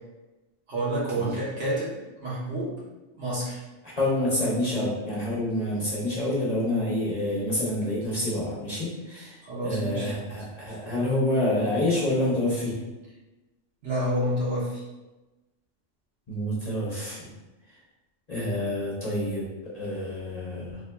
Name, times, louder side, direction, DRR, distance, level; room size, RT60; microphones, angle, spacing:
voice 1, 0.7-2.8 3.1-3.6 9.4-10.1 13.8-14.8, right 1 dB, 65° right, -6 dB, 1.4 m, -29 dB
voice 2, 4.0-12.7 16.3-17.3 18.3-19.5 19.7-20.8, left 1 dB, 35° left, -6 dB, 0.8 m, -27 dB
4.2 x 3.3 x 2.2 m, 1.1 s
omnidirectional pair, 1.3 m